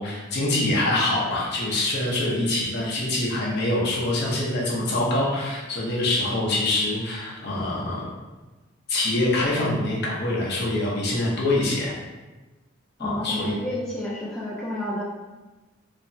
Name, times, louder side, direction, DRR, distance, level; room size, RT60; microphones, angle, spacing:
voice 1, 0.0-8.1 8.9-11.9 13.0-13.5, left 2 dB, 50° left, -4 dB, 0.6 m, -25 dB
voice 2, 13.0-15.0, left 1 dB, ahead, -8 dB, 0.3 m, -30 dB
3.2 x 2.0 x 2.6 m, 1.2 s
head